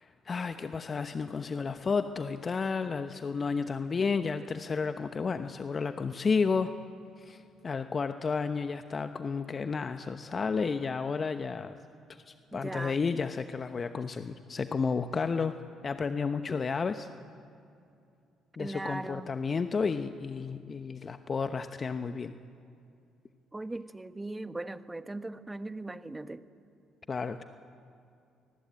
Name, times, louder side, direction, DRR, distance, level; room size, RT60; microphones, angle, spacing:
voice 1, 0.0-6.7 7.2-11.8 12.1-15.6 15.8-17.1 18.6-22.4 27.1-27.4, left 5 dB, 40° left, 9 dB, 1.0 m, -32 dB
voice 2, 12.5-13.0 18.6-19.3 23.5-26.4, right 2 dB, 15° right, 11 dB, 1.3 m, -39 dB
26.0 x 20.0 x 9.0 m, 2.5 s
hypercardioid pair, 50°, 0 cm